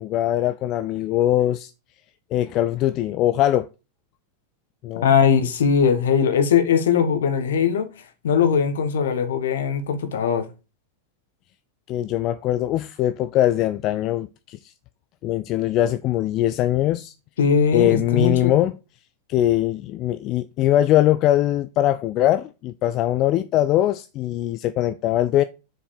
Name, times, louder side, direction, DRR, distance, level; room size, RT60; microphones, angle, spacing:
voice 1, 0.0-1.7 2.3-3.7 4.8-5.1 11.9-14.7 15.2-17.1 17.7-18.8 19.3-25.4, left 13 dB, 35° left, 0.4 m, -21 dB
voice 2, 5.0-7.9 8.2-10.5 17.4-18.5, left 7 dB, 60° left, 1.4 m, -20 dB
6.7 x 4.8 x 6.4 m
figure-of-eight pair, 90°, 0 cm